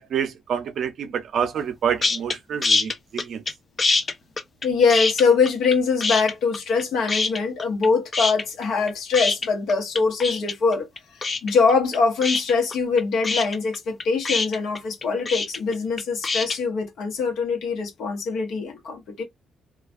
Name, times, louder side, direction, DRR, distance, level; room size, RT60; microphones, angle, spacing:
voice 1, 0.0-3.4, right 8 dB, 65° right, 0.5 m, -27 dB
sound 1, 2.0-2.4 2.6-3.5 3.8-5.8 6.0-6.8 7.1-7.9 8.1-16.6, left 3 dB, 35° left, 0.4 m, -24 dB
voice 2, 4.6-10.9 11.1-19.2, left 4 dB, 80° left, 1.0 m, -23 dB
2.4 x 2.3 x 2.4 m
cardioid pair, 70°, 0 cm